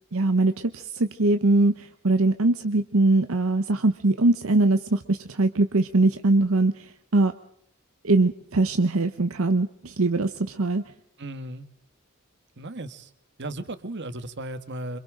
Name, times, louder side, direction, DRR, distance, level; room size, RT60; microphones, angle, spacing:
voice 1, 0.1-7.3 8.0-10.8, right 2 dB, 75° right, 8 dB, 1.0 m, -22 dB
voice 2, 11.2-11.7 12.6-13.1 13.4-15.0, right 1 dB, 55° right, 11 dB, 1.6 m, -35 dB
27.5 x 26.5 x 3.8 m, 0.74 s
head